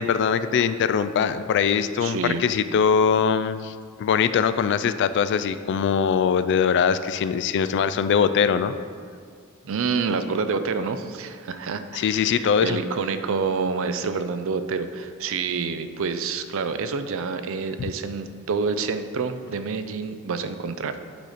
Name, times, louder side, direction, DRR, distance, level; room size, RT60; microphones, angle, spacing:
voice 1, 0.0-8.8 11.9-12.8, left 7 dB, 55° left, 12 dB, 0.3 m, -22 dB
voice 2, 2.0-2.4 9.6-21.0, right 5 dB, 65° right, 10 dB, 0.5 m, -28 dB
9.1 x 4.0 x 5.0 m, 2.1 s
head